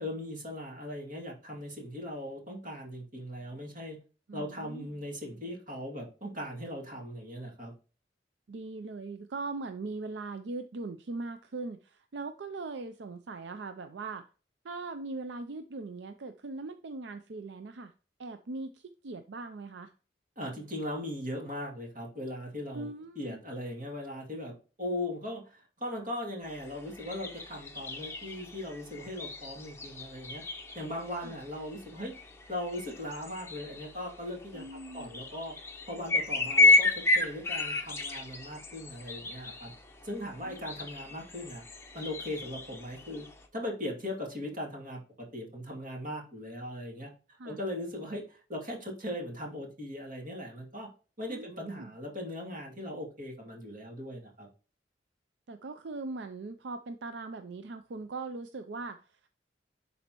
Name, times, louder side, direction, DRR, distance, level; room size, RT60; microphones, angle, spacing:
voice 1, 0.0-4.0 4.3-7.7 20.4-22.9 23.2-30.4 30.7-32.1 32.5-34.6 34.9-35.6 35.8-39.7 40.0-41.6 41.9-43.3 43.5-47.1 47.4-50.9 51.2-54.5, left 1 dB, 45° right, 0 dB, 2.5 m, -39 dB
voice 2, 4.3-4.9 8.5-14.2 14.6-17.9 18.2-19.9 22.7-23.4 31.2-31.4 34.5-35.2 40.4-40.8 47.4-47.6 51.3-51.9 55.5-59.3, right 3 dB, 75° right, 9 dB, 0.5 m, -40 dB
sound 1, 26.4-43.5, left 2 dB, 15° left, 0.9 m, -32 dB
11.0 x 4.2 x 3.0 m, 0.36 s
head